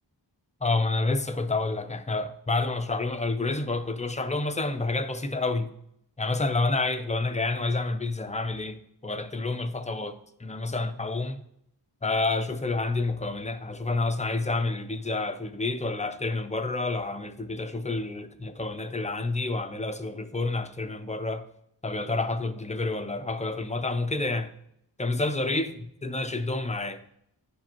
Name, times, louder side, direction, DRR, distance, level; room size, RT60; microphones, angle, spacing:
voice 1, 0.6-5.7 6.2-11.4 12.0-21.4 21.8-24.5 25.0-27.0, left 3 dB, 15° left, 0.5 m, -29 dB
10.0 x 4.8 x 3.0 m
wide cardioid pair, 70°, 45 cm